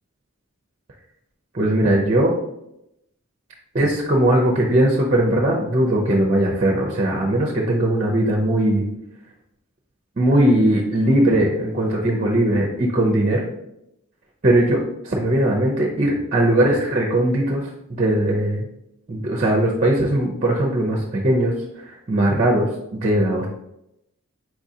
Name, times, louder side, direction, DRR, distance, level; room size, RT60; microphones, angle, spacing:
voice 1, 1.5-2.3 3.7-8.8 10.2-13.5 14.4-18.7 19.1-23.5, right 1 dB, 35° right, 0 dB, 0.5 m, -19 dB
4.6 x 3.7 x 2.7 m, 0.83 s
head